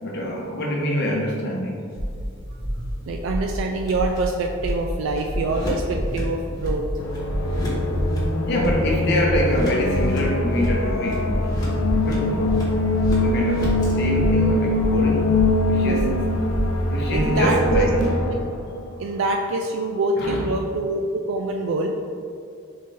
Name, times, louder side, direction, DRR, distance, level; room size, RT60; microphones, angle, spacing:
voice 1, 0.0-1.8 7.3-7.4 8.5-11.5 12.0-12.5 13.2-13.6 14.0-15.2 15.7-16.0 16.9-18.1 20.2-20.4, left 1 dB, 55° left, -2 dB, 0.8 m, -25 dB
sound 1, 1.9-13.9, equal, 20° left, 1.1 m, -34 dB
sound 2, 2.0-2.2 2.6-2.9 3.3-3.6 3.9-4.2 4.6-4.9 5.3-5.6 5.9-6.2 6.6-6.9 7.3-7.6 7.9-8.3 8.6-8.9 9.3-9.6 9.9-10.2 10.6-10.9 11.3-11.5 11.8-12.1 12.4-12.7 13.0-13.3 13.6-13.8 14.2-14.4 14.7-15.0 15.3-15.6 15.9-16.2 16.5-16.8 17.1-17.4 17.7-17.9, equal, 25° right, 0.7 m, -27 dB
voice 2, 3.1-6.8 15.8-16.1 17.1-18.4 19.0-22.0, right 2 dB, 65° right, 2 dB, 0.3 m, -25 dB
sound 3, 7.0-19.0, left 2 dB, 85° left, 0.5 m, -23 dB
4.1 x 3.7 x 3.3 m, 2.4 s
head